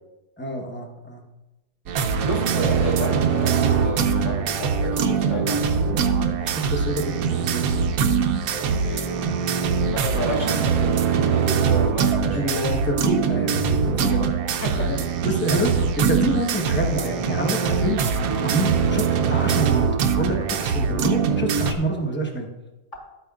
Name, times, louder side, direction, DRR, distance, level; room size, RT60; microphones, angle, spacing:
voice 1, 0.4-1.2 6.4-7.9 12.3-14.3 14.8-15.0 15.2-19.9 20.2-22.5, right 1 dB, 10° left, 1 dB, 0.6 m, -27 dB
sound 1, 1.9-21.7, right 6 dB, 65° right, 0.9 m, -22 dB
voice 2, 2.2-5.8 8.6-9.2 9.9-12.6 14.6-14.9, equal, 25° left, -4 dB, 3.1 m, -31 dB
12.5 x 8.6 x 2.4 m, 1.0 s
omnidirectional pair, 2.0 m